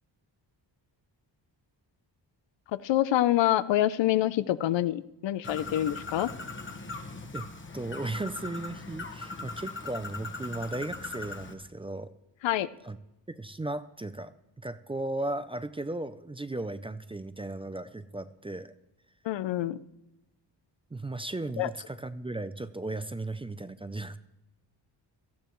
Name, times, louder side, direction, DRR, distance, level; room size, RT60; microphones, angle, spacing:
voice 1, 2.8-6.3 12.4-12.7 19.2-19.8 21.6-21.7, left 13 dB, 90° left, 15 dB, 0.6 m, -26 dB
Bird, 5.4-11.5, left 3 dB, 25° left, 1.2 m, -40 dB
voice 2, 7.7-12.1 12.8-13.0 13.3-14.3 14.6-18.7 20.9-24.2, right 2 dB, 15° right, 12 dB, 0.4 m, -36 dB
17.5 x 13.5 x 3.1 m, 0.95 s
wide cardioid pair, 125°, 43 cm